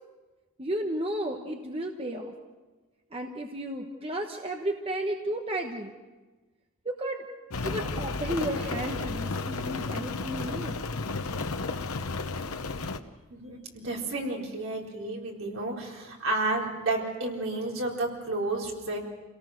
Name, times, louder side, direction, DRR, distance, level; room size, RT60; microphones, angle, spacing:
voice 1, 0.6-2.3 3.1-5.9 6.8-7.2 7.6-10.8, right 1 dB, 25° right, 3 dB, 1.2 m, -33 dB
Rain, 7.5-13.0, left 3 dB, 85° left, 1.0 m, -33 dB
voice 2, 13.3-19.0, right 2 dB, 65° right, -1 dB, 4.2 m, -31 dB
27.5 x 18.0 x 6.4 m, 1.2 s
head